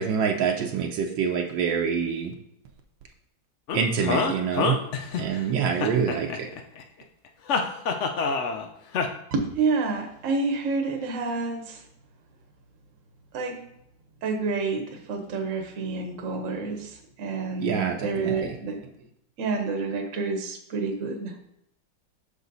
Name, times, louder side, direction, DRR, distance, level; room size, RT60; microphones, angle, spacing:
voice 1, 0.0-2.3 3.7-4.8 5.1-6.5 17.6-18.3, right 6 dB, 75° right, 3 dB, 1.4 m, -26 dB
sound 1, 3.7-5.4 5.8-6.8 7.5-8.7 8.9-9.1, left 5 dB, 85° left, 0.6 m, -26 dB
voice 2, 9.3-11.8 13.3-13.6 14.2-18.8 19.4-21.3, right 4 dB, 50° right, 2 dB, 1.2 m, -28 dB
6.2 x 5.0 x 4.0 m, 0.76 s
omnidirectional pair, 2.1 m